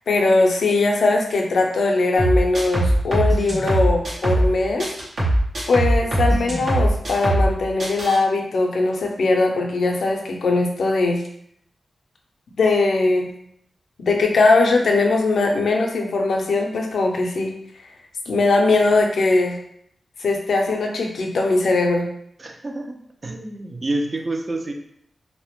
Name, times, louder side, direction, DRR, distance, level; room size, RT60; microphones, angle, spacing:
voice 1, 0.1-4.9 5.7-11.2 12.6-13.3 14.0-17.5 18.3-19.6 20.2-22.1, left 3 dB, 85° left, 1 dB, 0.4 m, -20 dB
sound 1, 2.2-4.5 4.8-7.5 7.8-8.2, right 1 dB, 85° right, 0.8 m, -20 dB
voice 2, 22.4-23.0 23.2-24.7, right 2 dB, 40° right, 3 dB, 0.4 m, -28 dB
2.1 x 2.0 x 2.9 m, 0.69 s
cardioid pair, 70°, 0 cm